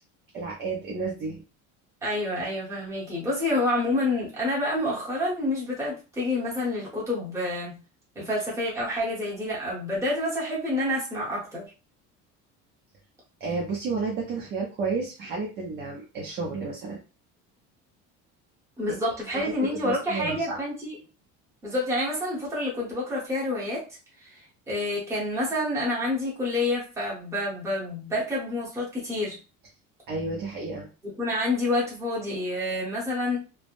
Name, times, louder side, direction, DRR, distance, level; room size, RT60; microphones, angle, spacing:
voice 1, 0.3-1.4 13.4-17.0 19.3-19.5 19.8-20.6 30.1-30.9, right 4 dB, 30° right, -2 dB, 0.5 m, -31 dB
voice 2, 2.0-7.7 8.1-11.7 18.8-21.0 21.6-23.8 24.2-24.4 24.7-29.4 31.0-33.4, left 1 dB, 10° right, -6 dB, 0.9 m, -28 dB
3.2 x 2.0 x 2.5 m, 0.33 s
cardioid pair, 180°, 33 cm